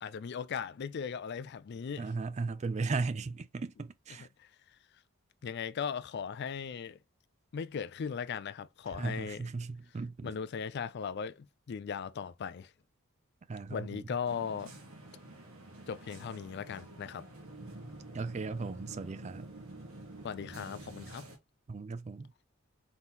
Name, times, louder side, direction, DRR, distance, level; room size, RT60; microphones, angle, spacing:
voice 1, 0.0-2.1 4.2-4.5 5.4-7.0 7.5-9.4 10.2-12.7 13.7-14.7 15.9-17.2 20.2-21.3, left 6 dB, 55° left, 0.4 m, -38 dB
voice 2, 2.0-4.3 9.0-10.3 13.5-14.0 18.1-19.5 21.7-22.3, right 4 dB, 35° right, 0.4 m, -36 dB
sound 1, 14.3-21.4, right 2 dB, 90° right, 1.4 m, -48 dB
3.9 x 3.7 x 2.9 m
head